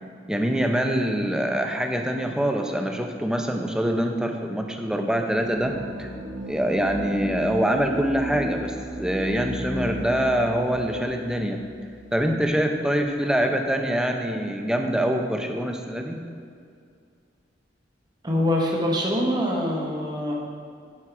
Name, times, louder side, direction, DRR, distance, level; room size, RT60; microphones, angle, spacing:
voice 1, 0.3-5.7 6.0-6.1 6.5-11.6 12.1-16.2, equal, 5° right, 3 dB, 0.5 m, -24 dB
sound 1, 5.4-12.5, right 1 dB, 75° right, 1.5 m, -35 dB
voice 2, 18.2-20.3, left 1 dB, 25° right, -2 dB, 1.0 m, -24 dB
9.5 x 4.6 x 4.6 m, 2.3 s
head